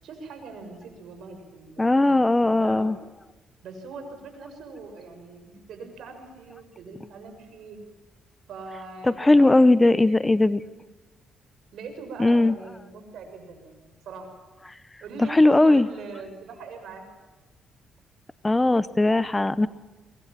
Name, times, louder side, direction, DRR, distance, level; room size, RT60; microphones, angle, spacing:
voice 1, 0.0-2.9 3.6-7.8 8.5-10.4 11.7-14.4 15.0-17.0, right 4 dB, 70° right, 6 dB, 6.6 m, -42 dB
voice 2, 1.8-3.0 9.1-10.6 12.2-12.5 15.2-15.9 18.4-19.7, left 2 dB, 15° left, 16 dB, 0.8 m, -19 dB
24.0 x 21.5 x 7.5 m, 1.2 s
cardioid pair, 90°, 0 cm